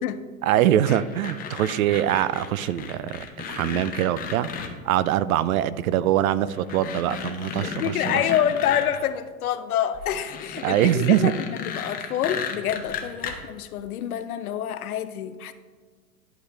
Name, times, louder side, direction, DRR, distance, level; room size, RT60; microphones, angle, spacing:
voice 1, 0.4-8.2 10.6-11.3, right 12 dB, 75° right, 17 dB, 0.5 m, -23 dB
sound 1, 0.8-4.7 5.9-6.0 6.5-9.0 9.9-13.3, left 7 dB, 20° left, 0.7 m, -34 dB
voice 2, 7.6-15.5, left 10 dB, 80° left, 12 dB, 0.7 m, -27 dB
11.0 x 5.1 x 3.3 m, 1.6 s
hypercardioid pair, 115°, 43 cm